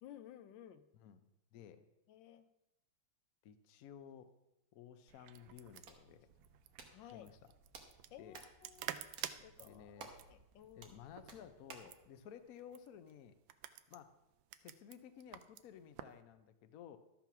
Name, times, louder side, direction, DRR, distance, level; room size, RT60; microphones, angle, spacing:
voice 1, 0.0-0.8 2.1-2.5 6.9-7.3 8.1-9.1 9.4-11.0, left 11 dB, 75° left, 11 dB, 1.1 m, -56 dB
voice 2, 0.9-1.9 3.4-4.3 4.7-6.3 7.0-7.4 8.2-8.4 9.6-10.2 10.7-13.4 13.9-14.2 14.6-17.0, left 9 dB, 90° left, 10 dB, 0.7 m, -55 dB
sound 1, 5.1-16.2, right 12 dB, 75° right, 1.2 m, -51 dB
Hands, 5.5-12.0, right 4 dB, 50° right, 1.4 m, -58 dB
12.5 x 5.8 x 5.8 m, 0.89 s
omnidirectional pair, 2.4 m